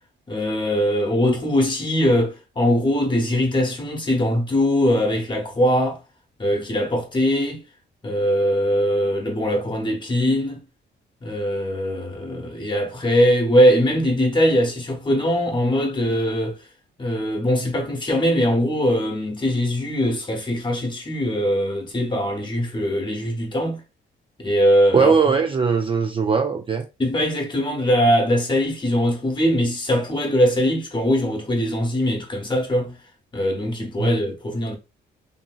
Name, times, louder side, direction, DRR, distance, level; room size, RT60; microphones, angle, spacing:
voice 1, 0.3-6.0 6.4-7.6 8.0-10.6 11.2-16.6 17.0-23.8 24.4-25.1 27.0-33.0 33.3-34.8, equal, 25° left, 1.0 m, -21 dB
voice 2, 24.9-26.9 34.0-34.1, right 5 dB, 25° right, 0.4 m, -19 dB
2.7 x 2.7 x 2.3 m
cardioid pair, 90°, 20 cm